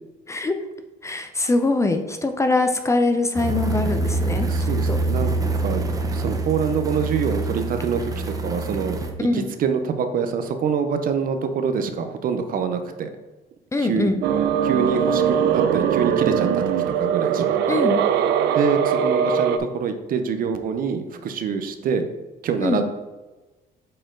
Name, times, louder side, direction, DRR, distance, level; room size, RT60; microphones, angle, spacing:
voice 1, 1.0-4.5 4.9-5.0 9.2-9.5 13.7-14.2 17.7-18.0 22.6-22.8, left 3 dB, 15° left, 7 dB, 0.6 m, -22 dB
sound 1, 3.4-9.1, right 2 dB, 20° right, 1.0 m, -25 dB
voice 2, 4.5-5.3 5.6-5.9 6.1-9.0 9.3-13.1 13.8-14.1 14.6-17.4 18.5-22.0 22.4-22.9, right 6 dB, 55° right, 7 dB, 0.8 m, -25 dB
sound 2, 14.2-19.6, right 8 dB, 80° right, 0.6 m, -21 dB
7.7 x 4.3 x 3.8 m, 1.1 s
cardioid pair, 110°, 17 cm